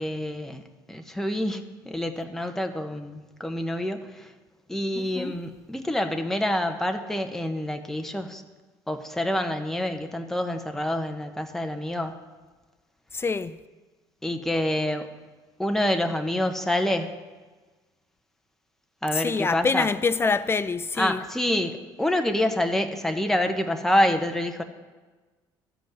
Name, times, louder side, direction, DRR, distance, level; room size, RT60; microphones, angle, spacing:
voice 1, 0.0-4.3 4.7-8.4 8.9-12.2 14.2-15.1 15.6-17.1 19.0-19.9 21.0-24.6, left 1 dB, 5° left, 1.0 m, -27 dB
voice 2, 4.9-5.4 13.1-13.6 19.1-21.2, left 4 dB, 25° left, 0.5 m, -26 dB
12.5 x 5.3 x 7.6 m
supercardioid pair, 75°, 11 cm